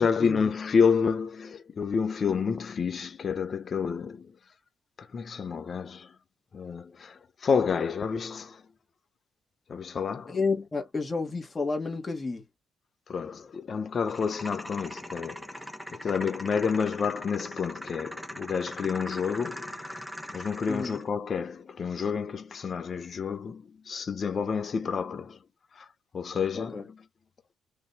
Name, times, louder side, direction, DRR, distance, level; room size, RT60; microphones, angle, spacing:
voice 1, 0.0-4.3 5.0-6.1 6.5-8.6 9.7-10.4 13.1-19.9 20.3-25.4 25.7-25.9 26.1-27.0, left 6 dB, 45° left, 1.0 m, -29 dB
voice 2, 10.3-12.4 16.2-16.4 20.7-21.0 26.5-26.8, left 4 dB, 25° left, 1.8 m, -31 dB
sound 1, 14.1-21.1, equal, ahead, 1.4 m, -41 dB
5.0 x 3.3 x 3.1 m
cardioid pair, 90°, 0 cm